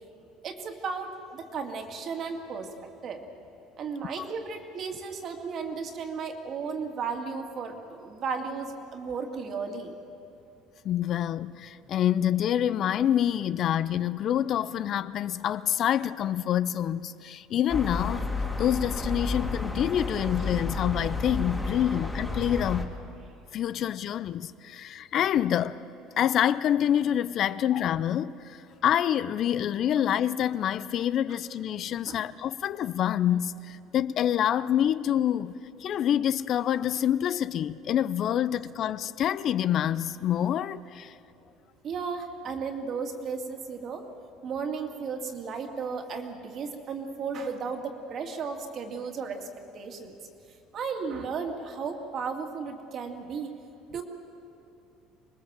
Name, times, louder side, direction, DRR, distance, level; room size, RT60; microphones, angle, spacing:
voice 1, 0.4-2.7 3.0-3.2 3.8-9.9 32.1-32.2 41.8-44.0 44.4-49.5 49.7-50.1 50.7-53.5 53.9-54.0, right 5 dB, 40° right, 2.3 m, -34 dB
voice 2, 10.8-18.3 18.6-22.9 23.5-25.8 26.2-35.5 35.8-41.1, left 10 dB, 45° left, 0.5 m, -27 dB
sound 1, 17.7-22.8, left 2 dB, 5° left, 2.2 m, -31 dB
25.5 x 20.5 x 7.4 m
cardioid pair, 140°, 0 cm